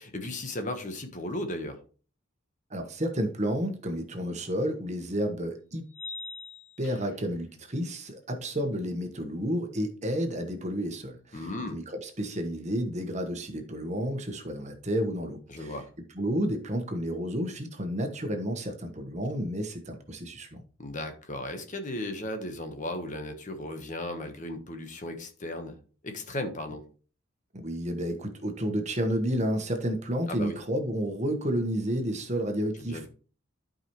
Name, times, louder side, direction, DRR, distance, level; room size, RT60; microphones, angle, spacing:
voice 1, 0.0-1.8 11.3-11.8 15.5-15.9 20.8-25.8 26.0-26.8 30.3-30.5 32.9-33.1, left 1 dB, 35° left, 6 dB, 1.2 m, -36 dB
voice 2, 2.7-5.8 6.8-15.7 16.1-20.6 27.6-33.1, equal, 35° right, 5 dB, 1.3 m, -31 dB
sound 1, 4.2-4.3 5.9-7.3, left 3 dB, 75° left, 2.3 m, -43 dB
12.0 x 5.1 x 3.1 m, 0.38 s
head